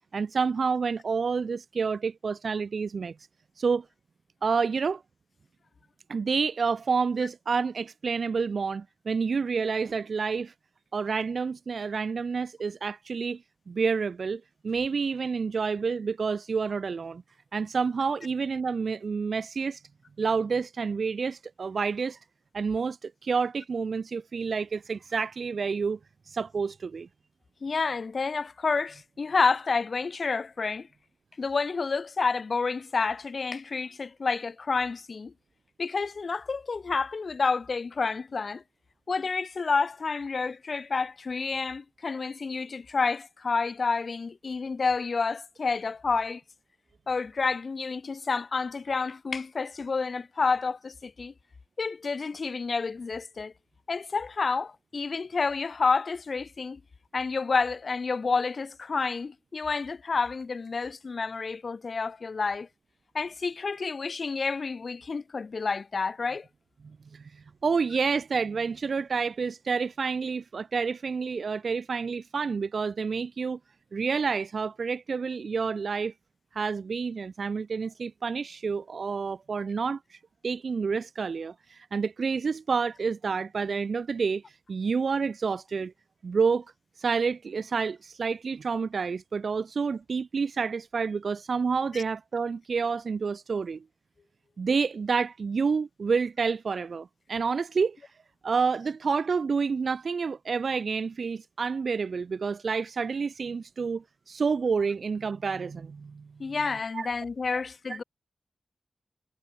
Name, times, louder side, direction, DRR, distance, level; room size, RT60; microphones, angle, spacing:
voice 1, 0.1-3.1 3.6-3.8 4.4-5.0 6.1-10.5 10.9-13.4 13.7-17.2 17.5-19.8 20.2-22.2 22.5-26.0 26.3-27.1 67.1-73.6 73.9-76.1 76.5-80.2 80.4-84.4 84.7-85.9 86.2-86.6 87.0-93.8 94.6-98.0 98.4-106.2 106.9-107.1 107.5-107.6 107.9-108.0, right 5 dB, 60° right, 3.3 m, -29 dB
voice 2, 27.6-30.9 31.4-35.3 35.8-38.6 39.1-46.4 47.1-51.3 51.8-53.5 53.9-56.8 57.1-62.7 63.1-66.5 91.9-92.0 106.4-108.0, left 4 dB, 50° left, 7.8 m, -29 dB
wide cardioid pair, 160°, 0 cm